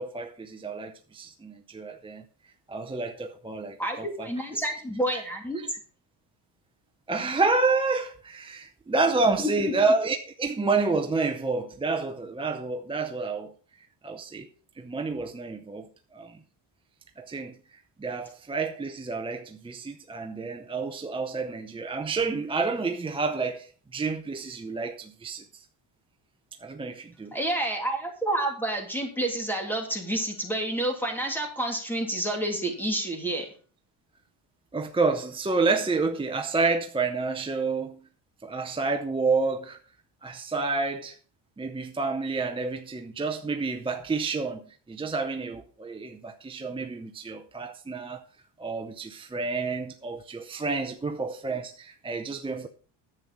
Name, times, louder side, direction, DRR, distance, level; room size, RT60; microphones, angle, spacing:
voice 1, 0.0-2.2 2.7-4.7 5.1-5.2 5.6-5.7 7.1-13.5 14.0-14.5 14.8-16.4 17.2-17.6 18.0-25.4 26.6-27.3 34.7-38.0 38.4-39.8 40.2-41.2 41.6-44.6 44.9-48.2 48.6-52.7, right 3 dB, 10° right, 0.6 m, -29 dB
voice 2, 3.8-5.6 9.4-9.7 27.3-33.5, right 1 dB, 5° left, 3.0 m, -29 dB
10.5 x 7.8 x 5.5 m
cardioid pair, 145°, 47 cm